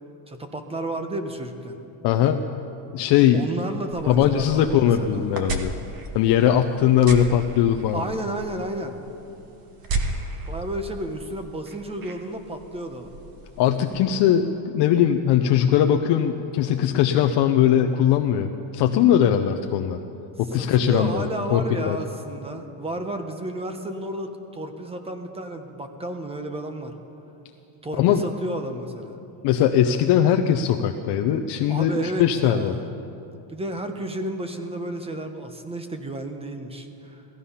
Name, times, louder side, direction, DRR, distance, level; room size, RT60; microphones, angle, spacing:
voice 1, 0.3-1.8 3.3-5.2 7.9-9.0 10.5-13.1 20.5-26.9 27.8-29.2 31.7-32.8 33.5-37.2, right 1 dB, 10° right, 6 dB, 1.0 m, -32 dB
voice 2, 2.0-2.4 2.9-3.4 4.1-5.7 6.1-8.0 13.6-20.0 20.4-21.3 21.5-22.0 28.0-28.2 29.4-32.8, left 10 dB, 55° left, 5 dB, 0.7 m, -20 dB
sound 1, 3.9-14.0, right 2 dB, 45° right, 1.4 m, -35 dB
17.5 x 14.5 x 5.6 m, 2.9 s
cardioid pair, 145°, 49 cm